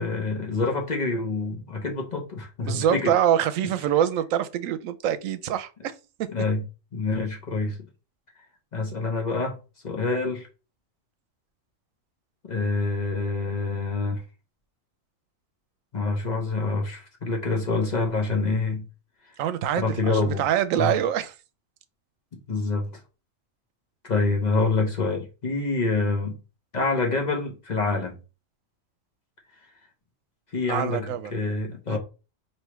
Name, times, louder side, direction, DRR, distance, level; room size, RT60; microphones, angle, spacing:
voice 1, 0.0-3.1 6.3-6.6 6.9-7.8 8.7-9.6 9.8-10.5 12.5-14.2 15.9-18.8 19.8-20.4 20.8-21.0 22.3-22.9 24.0-26.4 26.7-28.1 30.5-32.0, left 3 dB, 40° left, 0.8 m, -26 dB
voice 2, 2.6-5.9 19.4-20.0 20.2-21.4 30.7-31.3 31.9-32.0, right 10 dB, 80° right, 1.0 m, -25 dB
4.7 x 2.9 x 3.1 m
omnidirectional pair, 1.4 m